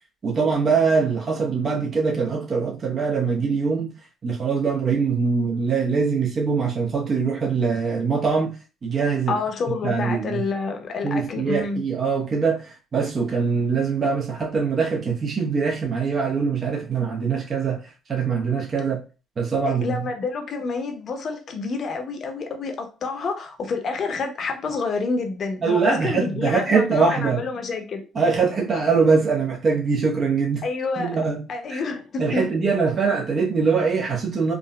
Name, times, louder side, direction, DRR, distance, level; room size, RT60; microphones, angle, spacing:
voice 1, 0.2-3.9 4.2-8.6 8.8-9.4 9.8-10.4 11.0-19.0 19.4-20.1 25.6-27.4 28.1-30.6 31.0-31.4 31.7-31.8 32.2-34.5, right 5 dB, 45° right, 0.9 m, -23 dB
voice 2, 9.3-11.8 19.6-28.1 30.6-31.1 31.5-32.5, left 4 dB, 55° left, 0.8 m, -28 dB
3.7 x 2.3 x 2.2 m
hypercardioid pair, 55°, 0 cm